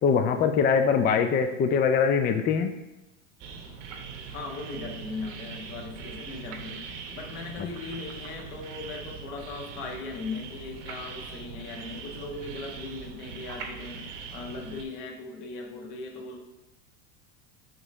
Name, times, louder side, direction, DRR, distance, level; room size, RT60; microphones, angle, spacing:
voice 1, 0.0-2.7 7.6-7.7, left 6 dB, 25° left, 7 dB, 0.4 m, -23 dB
sound 1, 3.4-14.8, right 5 dB, 65° right, 1.1 m, -41 dB
voice 2, 4.3-6.8 7.1-14.0 14.3-16.4, left 3 dB, 65° left, 1 dB, 1.4 m, -38 dB
5.1 x 3.6 x 5.2 m, 0.97 s
supercardioid pair, 100°, 40 cm